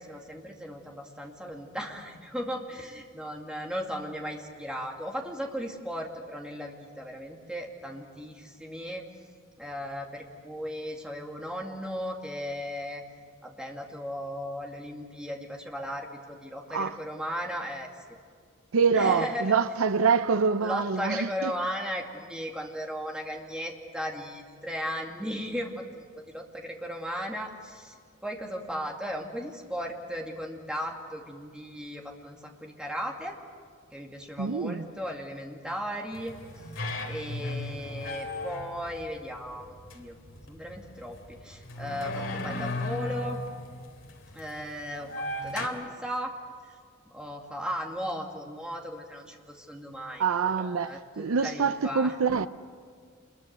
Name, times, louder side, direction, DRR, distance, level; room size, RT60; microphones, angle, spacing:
voice 1, 0.0-9.0 9.6-13.0 13.4-18.0 18.9-19.5 20.6-28.0 28.2-33.4 33.9-36.3 37.0-40.2 40.5-43.4 44.3-45.1 45.4-46.3 47.0-52.1, equal, 5° right, 2.3 m, -36 dB
voice 2, 18.7-21.5 34.4-34.9 50.2-52.5, right 5 dB, 90° right, 0.6 m, -25 dB
sound 1, 36.1-45.7, left 2 dB, 65° left, 2.9 m, -37 dB
27.5 x 22.0 x 6.8 m
head